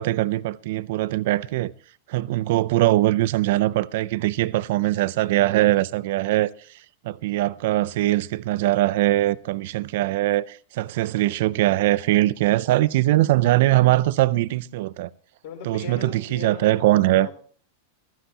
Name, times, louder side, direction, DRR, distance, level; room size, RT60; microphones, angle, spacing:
voice 1, 0.0-1.7 2.1-6.5 7.0-15.1 15.6-17.3, right 16 dB, 50° right, 0.5 m, -21 dB
voice 2, 14.2-14.7 15.4-17.3, left 6 dB, 50° left, 4.7 m, -39 dB
15.5 x 13.5 x 2.9 m
supercardioid pair, 180°, 0 cm